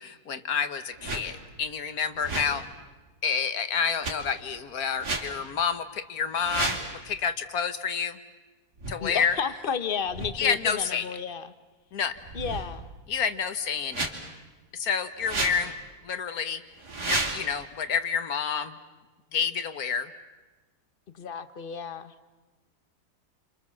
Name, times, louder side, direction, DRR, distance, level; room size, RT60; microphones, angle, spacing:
voice 1, 0.0-2.6 3.2-6.8 7.1-8.2 8.9-9.4 10.4-11.2 11.9-12.2 13.1-14.1 14.7-15.7 16.0-16.6 17.0-18.8 19.3-20.1, left 6 dB, 65° left, 10 dB, 1.7 m, -29 dB
sound 1, 1.0-1.3 2.1-2.6 4.0-4.1 5.0-5.3 6.3-6.9 8.8-8.9 10.1-10.3 12.2-12.9 13.9-14.1 15.2-15.6 16.8-17.4, right 2 dB, 90° right, 3.9 m, -31 dB
voice 2, 9.0-11.5 12.3-12.9 21.1-22.1, left 6 dB, 40° left, 12 dB, 1.1 m, -32 dB
29.5 x 26.0 x 7.3 m, 1.2 s
omnidirectional pair, 1.7 m